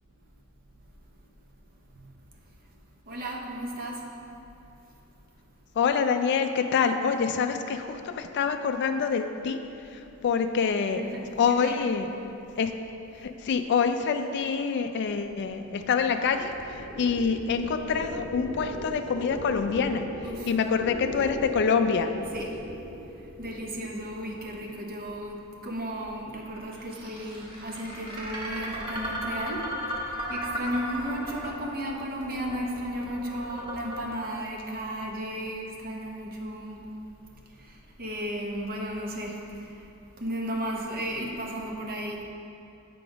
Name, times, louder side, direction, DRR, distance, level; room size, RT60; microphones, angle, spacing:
voice 1, 3.1-4.1 10.9-11.3 11.6-11.9 20.2-20.5 22.3-22.7 23.0-36.9 37.5-39.9 40.2-42.2, equal, 45° right, 0 dB, 0.8 m, -35 dB
voice 2, 5.8-9.6 10.2-11.0 11.4-12.1 12.6-12.7 13.2-16.5 17.0-20.1 20.5-22.1, left 6 dB, 50° left, 7 dB, 0.3 m, -26 dB
sound 1, 15.3-25.0 26.4-34.0, equal, 25° right, 1.1 m, -37 dB
7.7 x 3.8 x 5.0 m, 2.8 s
head